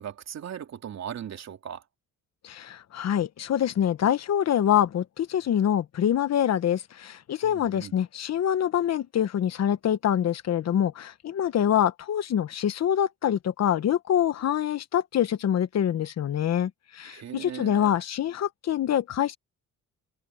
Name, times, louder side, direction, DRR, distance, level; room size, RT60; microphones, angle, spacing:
voice 1, 0.0-1.8 7.4-7.9 17.0-18.0, right 9 dB, 60° right, 3.2 m, -38 dB
voice 2, 2.4-19.4, left 10 dB, 60° left, 1.2 m, -25 dB
cardioid pair, 90°, 30 cm